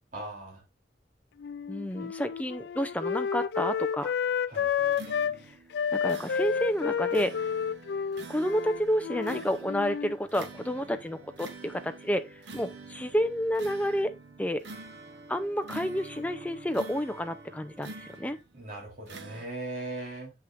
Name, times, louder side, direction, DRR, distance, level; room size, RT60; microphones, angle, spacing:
voice 1, 0.1-0.6 4.5-4.7 18.5-20.3, right 2 dB, 45° right, 3.3 m, -39 dB
Wind instrument woodwind instrument, 1.4-5.4 5.7-10.2, left 7 dB, 70° left, 0.3 m, -30 dB
voice 2, 1.7-4.1 5.9-7.3 8.3-12.2 12.5-14.6 15.3-18.4, equal, 10° left, 0.5 m, -30 dB
sound 1, 4.8-18.6 19.1-19.5, right 3 dB, 90° right, 1.1 m, -46 dB
7.8 x 6.0 x 2.5 m
head